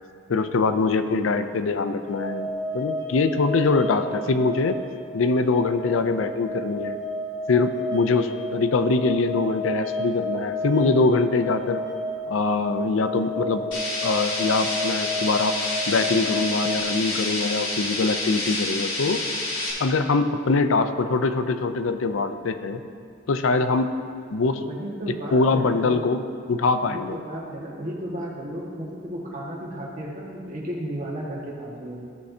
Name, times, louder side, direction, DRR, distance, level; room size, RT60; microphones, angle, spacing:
voice 1, 0.3-4.8 5.1-7.0 7.5-11.8 12.3-13.7 14.0-15.5 15.9-19.2 19.8-22.8 23.3-23.9 24.3-24.6 25.3-26.2 26.5-27.2, left 3 dB, 85° left, 10 dB, 0.5 m, -23 dB
sound 1, 2.0-16.8, left 1 dB, 25° right, 1.2 m, -32 dB
sound 2, 13.7-19.7, left 2 dB, 65° left, 2.2 m, -28 dB
voice 2, 24.6-26.2 26.8-32.0, right 1 dB, 40° right, -4 dB, 1.7 m, -34 dB
14.5 x 6.6 x 2.8 m, 2.3 s
head